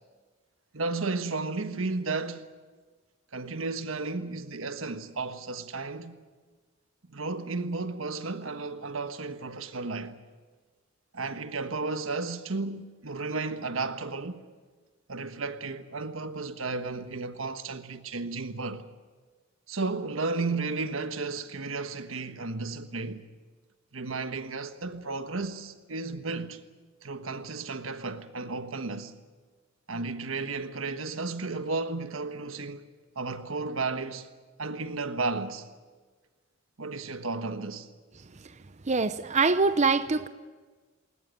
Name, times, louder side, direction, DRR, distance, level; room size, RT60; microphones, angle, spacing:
voice 1, 0.7-2.4 3.3-6.1 7.1-10.2 11.1-14.4 15.1-18.8 19.7-23.2 23.9-26.6 27.0-29.1 29.9-32.8 33.1-34.3 34.6-35.7 36.8-37.9, right 3 dB, 85° right, 1.4 m, -33 dB
voice 2, 38.8-40.3, right 4 dB, 35° right, 0.7 m, -24 dB
20.5 x 20.0 x 9.0 m
head